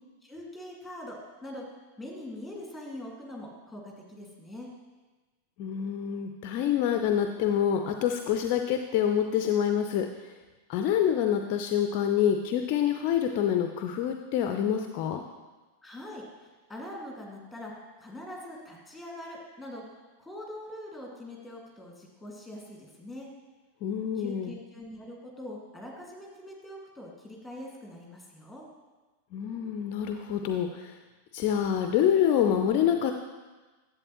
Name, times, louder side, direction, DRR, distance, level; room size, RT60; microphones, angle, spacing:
voice 1, 0.2-1.6 2.0-4.7 15.8-16.2 16.7-17.7 18.0-19.8 20.2-23.3 24.2-28.6, left 1 dB, 5° left, -1 dB, 2.1 m, -43 dB
voice 2, 5.6-10.3 10.7-15.2 23.8-24.5 29.3-31.0 31.3-33.1, left 9 dB, 45° left, 6 dB, 0.5 m, -26 dB
10.5 x 7.7 x 3.0 m, 1.2 s
figure-of-eight pair, 90°, 0 cm